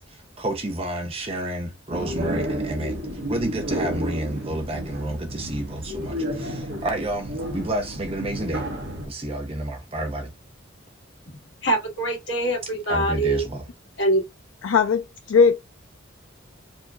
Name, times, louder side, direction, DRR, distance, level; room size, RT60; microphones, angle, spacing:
voice 1, 0.0-8.7 9.1-10.3 12.9-13.7, right 1 dB, 30° right, 0.7 m, -30 dB
sound 1, 1.9-9.1, equal, 60° right, 1.3 m, -31 dB
voice 2, 11.3-13.4 14.0-14.2, right 1 dB, 60° left, 2.1 m, -24 dB
voice 3, 14.6-15.0 15.3-15.6, left 5 dB, 80° left, 0.4 m, -17 dB
4.5 x 2.9 x 2.3 m
head